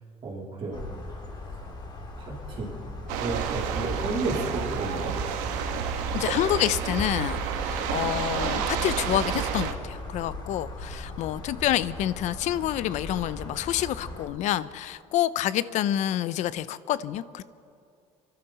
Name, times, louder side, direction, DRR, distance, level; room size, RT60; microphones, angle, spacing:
voice 1, 0.2-0.8 2.2-2.7 3.2-5.1, right 3 dB, 40° right, -3 dB, 3.7 m, -32 dB
sound 1, 0.7-14.3, left 2 dB, 35° left, 2.6 m, -38 dB
sound 2, 3.1-9.7, right 8 dB, 90° right, 1.3 m, -30 dB
voice 2, 6.1-17.4, left 12 dB, 65° left, 17 dB, 0.6 m, -28 dB
26.5 x 12.0 x 4.2 m, 2.6 s
cardioid pair, 105°, 13 cm